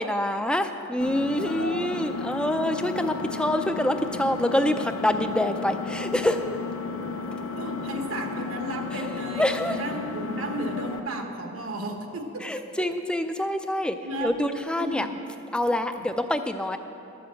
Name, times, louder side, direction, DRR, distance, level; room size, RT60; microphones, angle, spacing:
voice 1, 0.0-6.4 9.4-9.8 12.4-14.0 14.2-15.1 15.5-16.8, left 1 dB, 5° left, 8 dB, 0.4 m, -26 dB
Engine, 1.0-11.0, left 4 dB, 80° left, 0.9 m, -33 dB
voice 2, 1.4-1.9 7.5-12.8 14.0-14.3 14.7-15.2, right 1 dB, 75° right, 4 dB, 1.3 m, -34 dB
12.5 x 7.0 x 7.6 m, 2.8 s
head